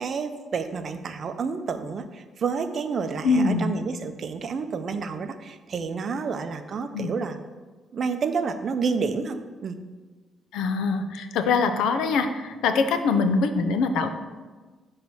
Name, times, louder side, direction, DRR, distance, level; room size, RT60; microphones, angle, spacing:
voice 1, 0.0-7.4 7.9-9.8, right 5 dB, 50° right, 9 dB, 0.5 m, -29 dB
voice 2, 3.2-3.7 6.9-7.1 10.5-14.1, left 4 dB, 85° left, 8 dB, 0.5 m, -23 dB
5.9 x 3.2 x 5.5 m, 1.3 s
cardioid pair, 90°, 0 cm